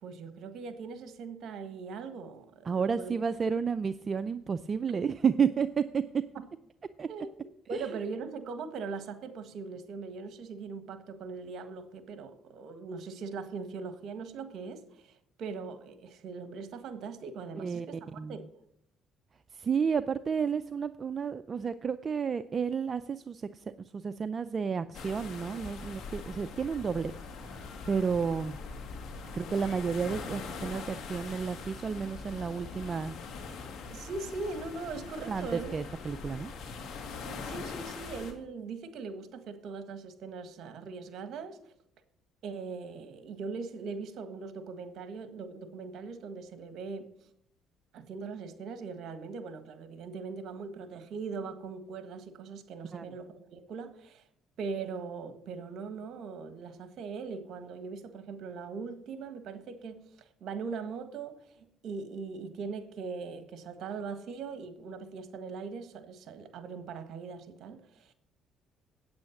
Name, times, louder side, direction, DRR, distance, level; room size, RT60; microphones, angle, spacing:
voice 1, 0.0-3.1 7.1-18.5 33.9-35.7 37.2-41.7 42.4-47.1 47.9-54.2 54.6-68.1, right 4 dB, 65° right, 1.6 m, -40 dB
voice 2, 2.7-6.2 7.0-7.1 7.7-7.9 17.6-17.9 18.1-18.4 19.5-23.6 23.9-27.1 27.9-28.6 29.3-33.2 35.3-36.5 52.9-53.0, right 6 dB, 40° right, 0.4 m, -31 dB
sound 1, 24.9-38.3, left 4 dB, 65° left, 2.3 m, -42 dB
8.8 x 8.7 x 7.1 m
cardioid pair, 85°, 0 cm